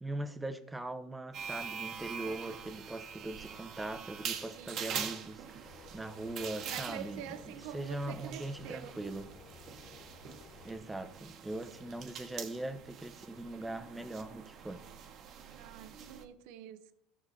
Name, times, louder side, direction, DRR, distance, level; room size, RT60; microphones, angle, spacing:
voice 1, 0.0-9.3 10.6-14.8, right 2 dB, 10° right, 1.0 m, -41 dB
sound 1, 1.3-16.2, right 7 dB, 50° right, 1.3 m, -44 dB
voice 2, 4.5-4.9 6.7-9.2 15.5-16.9, right 11 dB, 70° right, 0.8 m, -46 dB
sound 2, 5.6-10.8, left 6 dB, 40° left, 0.9 m, -56 dB
15.0 x 6.2 x 4.1 m
hypercardioid pair, 90°, 0 cm